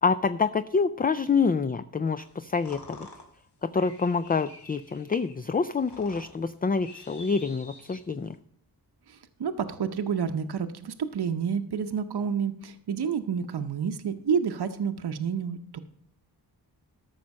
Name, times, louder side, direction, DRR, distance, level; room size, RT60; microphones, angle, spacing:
voice 1, 0.0-3.1 3.6-8.4, left 5 dB, 25° left, 12 dB, 0.3 m, -27 dB
sound 1, 2.2-8.4, left 2 dB, 80° left, 2.2 m, -50 dB
voice 2, 9.1-15.8, right 7 dB, 70° right, 8 dB, 0.8 m, -29 dB
13.0 x 6.2 x 5.3 m, 0.68 s
wide cardioid pair, 95°, 40 cm